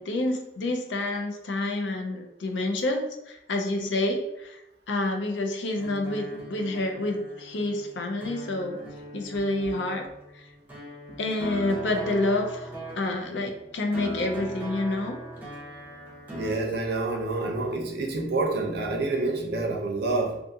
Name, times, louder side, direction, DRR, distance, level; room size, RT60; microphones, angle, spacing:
voice 1, 0.0-4.6 4.9-8.8 9.1-10.1 10.3-10.4 11.2-12.7 13.0-15.2, left 2 dB, 75° left, 4 dB, 0.5 m, -28 dB
sound 1, 5.8-16.6, right 1 dB, 10° right, 0.6 m, -40 dB
voice 2, 16.3-20.4, right 2 dB, 60° right, 1 dB, 0.5 m, -28 dB
2.5 x 2.4 x 2.6 m, 0.88 s
head